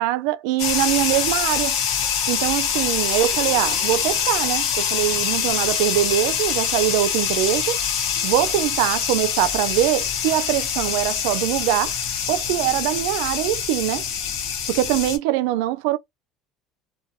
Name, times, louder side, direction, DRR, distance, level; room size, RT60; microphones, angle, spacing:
voice 1, 0.0-1.8 2.3-7.8 8.2-12.0 12.3-14.0 14.7-16.0, right 14 dB, 80° right, 0.3 m, -23 dB
sound 1, 0.6-15.2, left 8 dB, 70° left, 0.8 m, -24 dB
2.7 x 2.2 x 2.6 m
cardioid pair, 155°, 0 cm